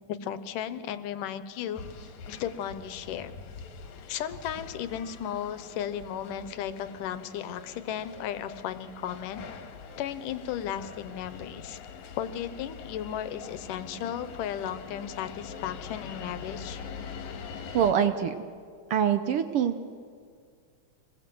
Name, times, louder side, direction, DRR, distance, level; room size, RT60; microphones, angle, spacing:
voice 1, 0.1-1.8 2.3-3.3 4.1-9.4 10.0-11.8 12.2-16.8, left 9 dB, 85° left, 12 dB, 2.5 m, -35 dB
sound 1, 1.7-17.9, left 6 dB, 65° left, 2.7 m, -44 dB
voice 2, 17.7-18.3 18.9-19.8, right 8 dB, 85° right, 9 dB, 1.2 m, -24 dB
27.0 x 20.0 x 7.8 m, 2.1 s
omnidirectional pair, 3.7 m